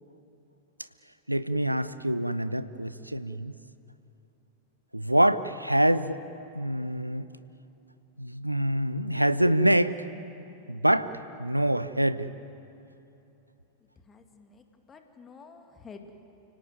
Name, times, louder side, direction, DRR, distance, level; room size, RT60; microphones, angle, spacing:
voice 1, 1.3-3.5 4.9-7.3 8.2-10.0 10.7-11.1 11.4-12.3, right 1 dB, 90° right, 14 dB, 0.8 m, -25 dB
voice 2, 13.8-16.1, left 5 dB, 20° left, 5 dB, 2.2 m, -50 dB
29.5 x 17.5 x 9.6 m, 2.9 s
figure-of-eight pair, 90°, 0 cm